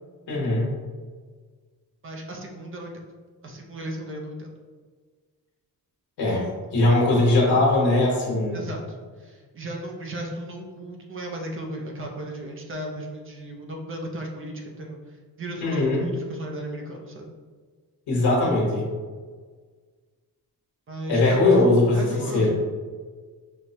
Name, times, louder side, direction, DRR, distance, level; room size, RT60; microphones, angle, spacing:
voice 1, 0.3-0.7 6.2-6.4 6.7-8.6 15.6-16.0 18.1-18.8 21.1-22.1 22.3-22.5, left 2 dB, 90° left, -4 dB, 1.2 m, -20 dB
voice 2, 2.0-2.9 3.4-4.5 8.5-17.3 20.9-21.5 21.9-22.5, right 1 dB, 35° right, 1 dB, 0.5 m, -35 dB
6.1 x 2.1 x 2.7 m, 1.5 s
wide cardioid pair, 175°, 39 cm